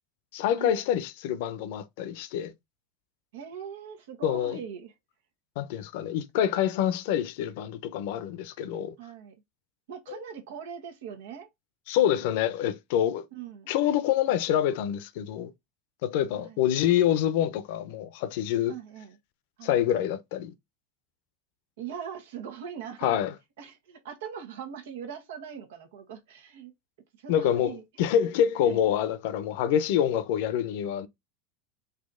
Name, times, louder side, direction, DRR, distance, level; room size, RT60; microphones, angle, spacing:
voice 1, 0.3-2.5 4.2-4.6 5.6-9.0 11.9-13.2 13.7-15.5 16.0-18.7 19.6-20.5 23.0-23.3 27.3-31.1, left 10 dB, 65° left, 0.7 m, -26 dB
voice 2, 3.3-4.9 9.0-9.4 9.9-11.5 13.3-13.7 16.3-16.6 18.7-19.2 19.6-19.8 21.8-23.2 23.6-26.7 27.2-27.8 28.6-28.9, right 8 dB, 85° right, 1.2 m, -41 dB
4.1 x 2.8 x 3.7 m
supercardioid pair, 135°, 0 cm